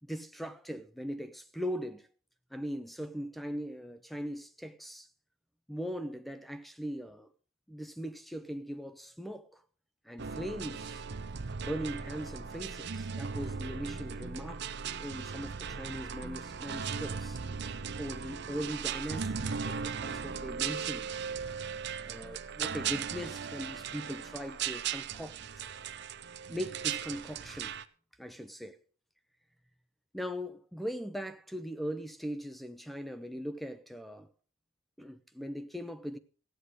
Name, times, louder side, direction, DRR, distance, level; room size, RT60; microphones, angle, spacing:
voice 1, 0.0-2.1 2.5-5.1 5.7-7.3 7.7-9.6 10.0-11.0 11.6-17.4 18.0-21.1 22.0-25.7 26.5-27.8 28.2-28.8 30.1-34.3 35.0-36.2, equal, ahead, 0.8 m, -40 dB
sound 1, 10.2-27.8, right 6 dB, 50° right, 0.7 m, -37 dB
15.0 x 9.8 x 4.9 m
head